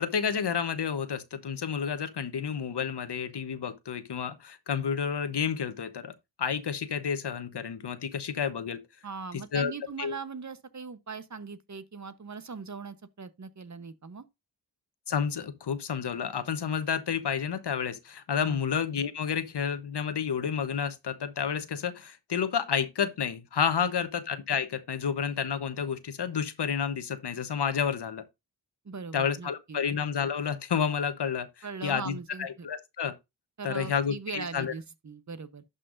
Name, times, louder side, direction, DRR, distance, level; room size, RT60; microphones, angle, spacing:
voice 1, 0.0-6.1 6.4-8.8 9.3-9.7 10.0-10.2 15.1-28.2 29.1-33.1 33.6-34.7, left 7 dB, 65° left, 1.1 m, -30 dB
voice 2, 9.0-14.2 18.4-18.6 23.8-23.9 28.8-29.8 31.6-32.7 33.6-35.6, right 5 dB, 40° right, 1.0 m, -40 dB
11.5 x 5.6 x 2.6 m
cardioid pair, 60°, 43 cm